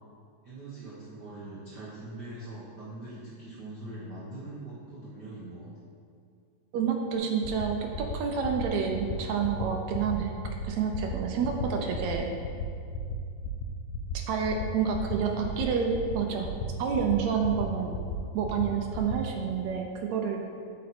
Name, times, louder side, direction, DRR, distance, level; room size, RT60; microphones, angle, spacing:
voice 1, 0.4-5.7 14.8-15.7, right 2 dB, 65° right, -8 dB, 1.0 m, -43 dB
voice 2, 6.7-10.3 10.6-12.3 14.3-16.5 16.8-18.0 18.3-20.4, right 6 dB, 80° right, 2 dB, 1.7 m, -29 dB
sound 1, 7.4-7.7 7.9-8.2 8.4-8.7 8.9-9.2 9.4-9.7 9.9-10.2 10.4-10.7 10.9-11.2 11.4-11.7 11.9-12.2 12.4-12.7 12.9-13.2 13.4-13.7 13.9-14.2 14.4-14.7 14.9-15.2 15.4-15.7 15.9-16.2 16.4-16.7 16.9-17.2 17.4-17.6 17.9-18.2 18.4-18.6 18.9-19.2, left 5 dB, 75° left, 1.7 m, -34 dB
8.2 x 5.2 x 4.3 m, 2.4 s
omnidirectional pair, 3.8 m